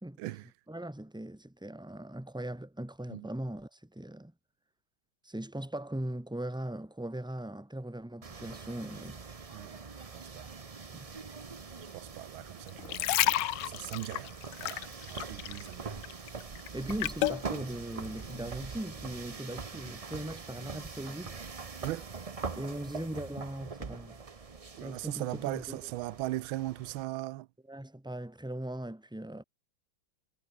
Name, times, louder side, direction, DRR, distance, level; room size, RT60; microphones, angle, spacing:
voice 1, 0.7-4.3 5.2-9.2 10.9-11.1 16.7-21.4 22.5-24.2 24.8-25.8 27.7-29.4, right 1 dB, 5° right, 1.1 m, -39 dB
sound 1, 8.2-27.0, right 4 dB, 45° right, 0.4 m, -43 dB
voice 2, 11.9-14.3 14.6-16.0 21.8-22.1 24.8-27.5, right 17 dB, 80° right, 1.4 m, -39 dB
sound 2, 12.7-15.7 16.0-17.4 18.0-18.2, left 15 dB, 70° left, 1.2 m, -31 dB
omnidirectional pair, 2.2 m